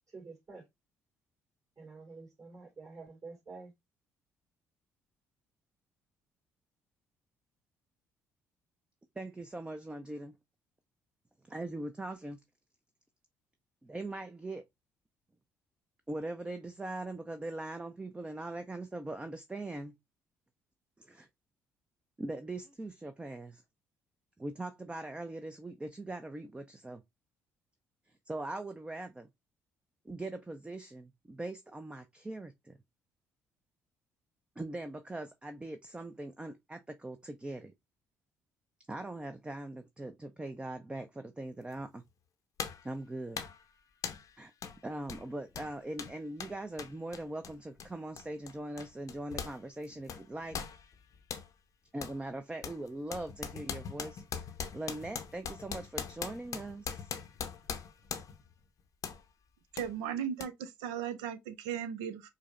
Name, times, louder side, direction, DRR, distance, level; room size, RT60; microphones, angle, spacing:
voice 1, 0.1-0.6 1.8-3.7, right 4 dB, 45° right, 2.5 m, -48 dB
voice 2, 9.2-10.3 11.5-12.4 13.8-14.6 16.1-19.9 21.0-21.3 22.2-23.6 24.4-27.0 28.3-29.3 30.1-32.8 34.6-37.7 38.9-42.0 42.8-43.4 44.4-44.5 44.8-50.6 51.9-57.1, right 2 dB, 15° right, 0.4 m, -41 dB
sound 1, 41.7-41.8 42.6-42.9 43.4-43.6 44.0-44.3 44.6-44.8 45.1-49.6 49.8-51.5 52.0-52.2 52.6-58.5 59.0-59.2 59.8-59.9 60.4-60.5, left 7 dB, 50° left, 0.6 m, -41 dB
voice 3, 59.7-62.3, right 9 dB, 75° right, 0.4 m, -37 dB
4.9 x 2.0 x 2.4 m
hypercardioid pair, 55°, 7 cm